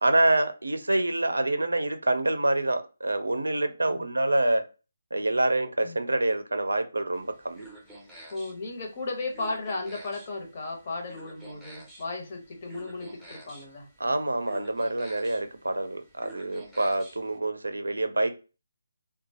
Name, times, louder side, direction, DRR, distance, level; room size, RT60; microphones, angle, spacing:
voice 1, 0.0-4.6 5.1-7.7 14.0-18.3, right 2 dB, 75° right, 0.5 m, -26 dB
sound 1, 7.1-17.4, right 2 dB, ahead, 0.6 m, -50 dB
voice 2, 8.3-13.9, left 3 dB, 40° left, 0.9 m, -35 dB
2.9 x 2.2 x 2.7 m
figure-of-eight pair, 150°, 0 cm